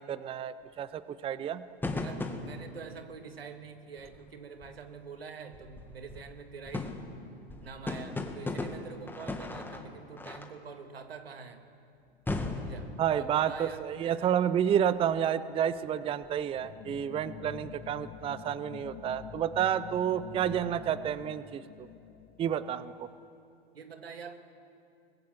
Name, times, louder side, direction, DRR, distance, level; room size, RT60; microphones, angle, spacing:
voice 1, 0.0-1.6 13.0-21.9 22.4-23.1, right 9 dB, 20° right, 15 dB, 0.6 m, -30 dB
sound 1, 1.8-3.0 4.0-4.3 4.6-5.0 5.5-10.6 12.3-13.6 15.0-15.1 16.2-16.4, left 2 dB, 5° left, 1.8 m, -38 dB
voice 2, 2.0-7.0 7.6-11.7 12.6-14.3 23.7-24.5, right 6 dB, 85° right, 7 dB, 2.0 m, -46 dB
sound 2, 16.5-23.3, left 10 dB, 30° left, 0.9 m, -47 dB
24.0 x 20.5 x 7.6 m, 2.6 s
hypercardioid pair, 105°, 29 cm